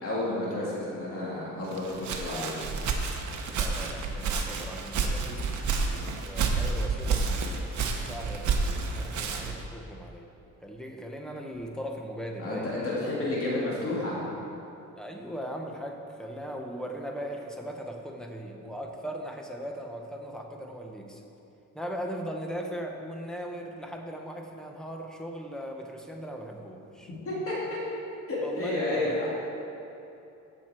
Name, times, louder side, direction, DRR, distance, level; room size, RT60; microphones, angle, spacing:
voice 1, 0.0-2.6 12.4-14.2 27.3-27.8 28.3-29.3, left 2 dB, 45° left, -7 dB, 2.8 m, -31 dB
Walk footsteps, 1.7-9.6, right 4 dB, 60° right, 1.2 m, -30 dB
voice 2, 3.5-5.5 5.9-10.3 10.6-13.0 15.0-21.2 21.7-27.1 28.4-29.2, equal, ahead, 1 dB, 1.0 m, -39 dB
15.0 x 6.5 x 4.4 m, 2.8 s
cardioid pair, 150°, 32 cm